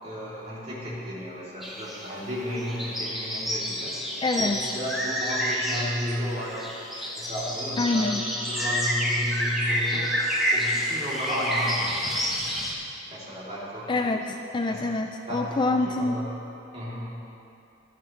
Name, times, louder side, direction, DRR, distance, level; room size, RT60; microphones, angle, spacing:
voice 1, 0.0-3.9 4.3-6.7 7.1-10.2 10.5-12.3 13.1-14.2 14.6-14.8 15.3-16.4 16.7-17.1, equal, 30° right, -8 dB, 2.9 m, -33 dB
sound 1, 1.6-12.7, equal, ahead, 1.5 m, -29 dB
voice 2, 4.2-4.6 6.9-7.1 7.8-8.2 13.9-16.2, left 2 dB, 25° left, 4 dB, 0.3 m, -26 dB
15.5 x 12.0 x 3.2 m, 2.7 s
head